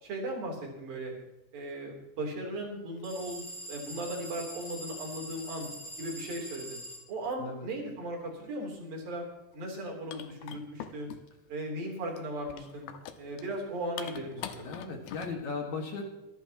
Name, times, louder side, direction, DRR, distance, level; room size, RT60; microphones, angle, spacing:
voice 1, 0.0-1.1 1.5-5.7 6.0-6.8 7.1-9.3 9.5-11.1 11.5-12.9 13.2-14.7, right 1 dB, 65° right, 0 dB, 5.2 m, -37 dB
sound 1, 3.0-3.1 4.5-4.6 5.4-5.9 7.1-7.4 9.2-9.3 9.5-9.6 10.1-11.5 12.2-15.3, left 9 dB, 80° left, 2.8 m, -45 dB
sound 2, 3.0-7.0, right 1 dB, 20° left, 3.6 m, -43 dB
voice 2, 14.6-16.0, left 4 dB, 55° left, 2 dB, 2.8 m, -36 dB
25.0 x 11.5 x 3.0 m, 0.98 s
omnidirectional pair, 4.5 m